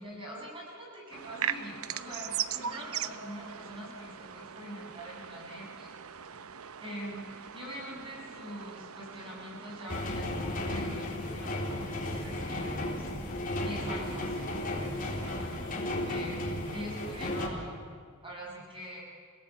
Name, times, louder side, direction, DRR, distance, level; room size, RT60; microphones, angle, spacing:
voice 1, 0.0-5.9 6.8-13.1 13.6-17.8 18.2-19.0, equal, 25° right, -3 dB, 7.3 m, -44 dB
sound 1, 1.1-10.1, right 9 dB, 80° right, 0.8 m, -39 dB
sound 2, 9.9-17.5, left 1 dB, 40° left, 3.8 m, -34 dB
28.5 x 17.5 x 8.6 m, 2.1 s
head